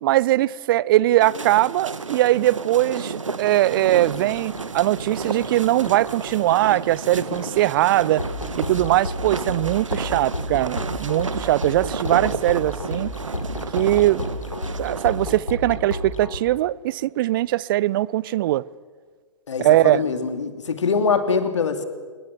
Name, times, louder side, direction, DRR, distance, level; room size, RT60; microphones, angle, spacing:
voice 1, 0.0-8.2 8.6-13.1 13.7-14.3 14.8-18.6 19.6-20.1, right 15 dB, 40° right, 0.6 m, -20 dB
sound 1, 1.2-15.4, right 4 dB, 75° right, 1.9 m, -32 dB
sound 2, 3.7-16.4, left 1 dB, 85° left, 3.7 m, -32 dB
voice 2, 19.5-21.8, left 5 dB, 65° left, 2.8 m, -23 dB
25.5 x 22.0 x 7.4 m
figure-of-eight pair, 110°, 16 cm